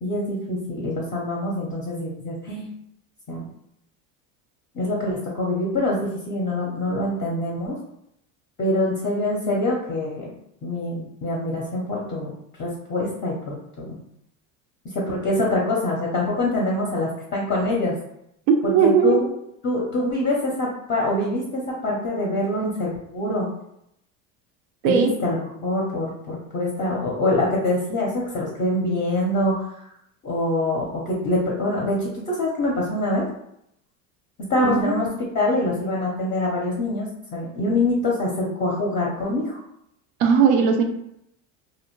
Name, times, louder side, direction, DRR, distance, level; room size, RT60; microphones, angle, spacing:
voice 1, 0.0-2.7 3.3-3.4 4.7-7.8 8.6-10.3 10.6-12.3 12.6-14.0 14.9-17.9 18.6-19.3 19.6-23.5 24.8-29.8 30.2-33.3 34.5-35.1 35.3-39.6, left 1 dB, 30° left, -3 dB, 0.5 m, -25 dB
voice 2, 18.5-19.2 24.8-25.1 34.5-35.0 40.2-40.8, right 6 dB, 90° right, 4 dB, 0.5 m, -18 dB
2.5 x 2.1 x 2.9 m, 0.77 s
supercardioid pair, 125°, 40 cm